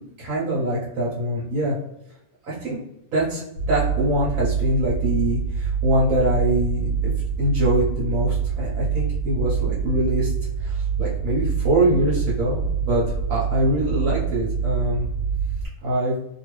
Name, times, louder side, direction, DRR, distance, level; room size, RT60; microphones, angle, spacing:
voice 1, 0.2-1.8 2.5-2.8 3.1-6.9 7.4-10.3 10.6-13.0 13.3-15.1 15.8-16.2, right 1 dB, 70° right, -6 dB, 1.3 m, -23 dB
sound 1, 3.6-15.7, right 6 dB, 80° left, 1.3 m, -25 dB
2.9 x 2.6 x 3.0 m, 0.85 s
omnidirectional pair, 1.5 m